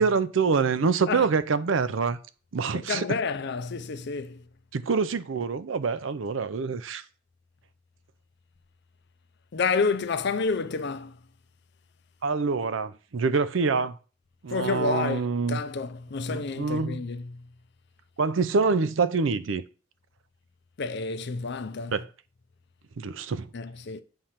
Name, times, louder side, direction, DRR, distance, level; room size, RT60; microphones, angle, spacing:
voice 1, 0.0-2.2 2.5-3.1 4.7-7.0 12.2-14.0 14.4-15.6 16.3-17.0 18.2-19.6 21.9-22.1 23.0-23.5, right 4 dB, 80° right, 0.5 m, -26 dB
voice 2, 2.7-4.4 9.5-11.2 14.5-17.5 20.8-22.0 23.5-24.0, left 4 dB, 60° left, 0.6 m, -29 dB
8.8 x 3.3 x 5.7 m
head